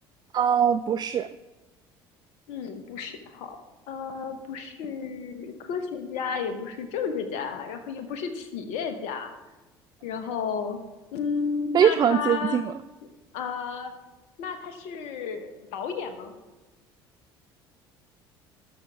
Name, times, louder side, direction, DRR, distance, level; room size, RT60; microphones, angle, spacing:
voice 1, 0.3-1.3 11.7-12.7, right 8 dB, 35° right, 12 dB, 0.3 m, -22 dB
voice 2, 2.5-3.6 3.9-9.3 10.0-10.8 11.1-12.7 13.0-13.9 14.4-16.3, left 6 dB, 65° left, 8 dB, 1.1 m, -32 dB
12.5 x 6.1 x 3.4 m, 1.1 s
hypercardioid pair, 65°, 13 cm